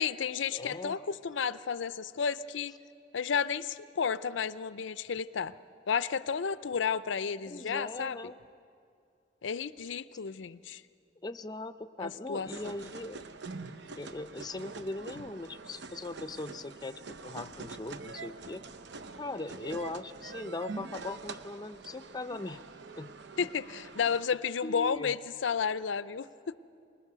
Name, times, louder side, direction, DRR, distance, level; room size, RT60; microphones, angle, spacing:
voice 1, 0.0-2.7 3.1-5.5 5.9-8.2 9.4-10.8 12.0-12.7 23.4-26.6, left 6 dB, 80° left, 15 dB, 0.5 m, -32 dB
voice 2, 0.5-0.9 7.5-8.4 11.2-13.3 14.0-18.6 19.2-22.6 23.0-23.1 23.4-23.5 24.6-25.1, left 2 dB, 20° left, 11 dB, 0.5 m, -40 dB
sound 1, 12.5-24.2, right 4 dB, 65° right, 0.9 m, -45 dB
25.0 x 20.5 x 6.8 m, 2.4 s
head